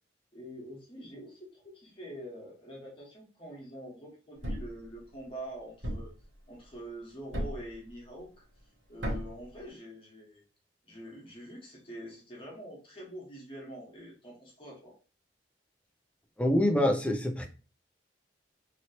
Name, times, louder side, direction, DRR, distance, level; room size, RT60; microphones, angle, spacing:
voice 1, 0.3-6.1 6.5-8.4 8.9-10.4 10.8-14.9, right 1 dB, 30° left, -4 dB, 1.2 m, -45 dB
Thump thud, 4.4-4.8 5.8-6.2 7.3-7.7 9.0-9.4, equal, 85° right, 1.1 m, -34 dB
voice 2, 16.4-17.5, left 1 dB, 5° left, 4 dB, 0.4 m, -25 dB
3.0 x 2.9 x 2.8 m, 0.35 s
head